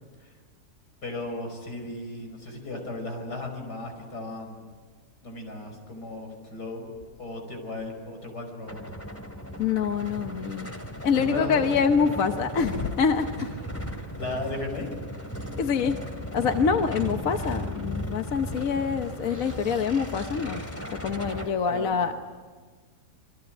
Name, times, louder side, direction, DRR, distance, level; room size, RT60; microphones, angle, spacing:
voice 1, 1.0-4.6 5.2-6.9 7.2-8.8 11.1-11.6 14.2-14.9 21.7-22.1, left 2 dB, 75° left, 4 dB, 6.0 m, -35 dB
sound 1, 8.7-21.5, equal, 10° left, 2.5 m, -36 dB
voice 2, 9.6-10.7 11.0-13.3 15.6-16.0 16.3-20.6 21.0-22.1, left 6 dB, 60° left, 7 dB, 1.4 m, -25 dB
27.0 x 23.0 x 9.1 m, 1.5 s
omnidirectional pair, 1.8 m